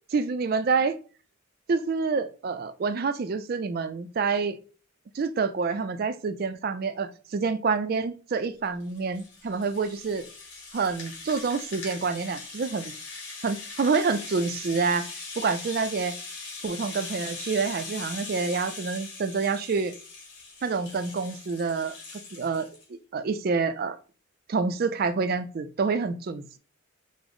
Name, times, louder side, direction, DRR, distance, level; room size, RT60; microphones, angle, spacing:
voice 1, 0.1-1.0 1.7-4.6 5.1-10.2 10.7-12.9 13.4-15.1 15.4-16.2 16.6-19.9 20.6-21.9 22.3-24.0 24.5-26.6, right 4 dB, 45° right, 0.3 m, -27 dB
Rattle (instrument), 8.6-22.8, left 3 dB, 55° left, 1.9 m, -41 dB
4.9 x 2.0 x 3.7 m
head